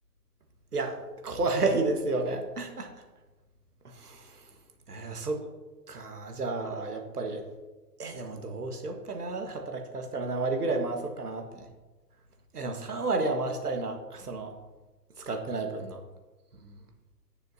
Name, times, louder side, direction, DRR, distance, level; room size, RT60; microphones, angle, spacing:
voice 1, 0.7-2.9 3.8-4.4 4.9-5.4 5.9-7.4 8.0-11.7 12.5-14.5 15.2-16.0 16.6-16.8, right 3 dB, 65° right, 4 dB, 1.7 m, -31 dB
16.0 x 6.8 x 2.8 m, 1.2 s
figure-of-eight pair, 125°, 49 cm